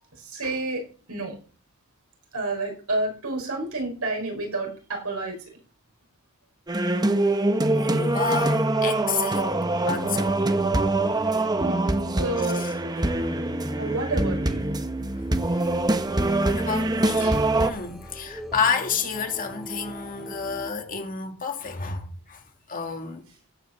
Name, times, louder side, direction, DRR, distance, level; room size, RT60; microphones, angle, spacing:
voice 1, 0.2-0.8 1.1-1.4 2.3-5.5 10.2-10.3 11.6-11.8 12.1-12.7 13.8-14.6 17.2-17.5, right 2 dB, 90° right, 5.8 m, -30 dB
sound 1, 6.7-17.7, right 2 dB, 20° right, 0.9 m, -24 dB
voice 2, 7.7-9.5 9.8-10.4 12.5-12.7 13.2-13.4 15.5-15.8 16.4-22.4 22.7-23.3, left 6 dB, 40° left, 2.2 m, -30 dB
sound 2, 15.1-20.7, right 1 dB, ahead, 1.5 m, -42 dB
16.0 x 5.7 x 7.6 m
head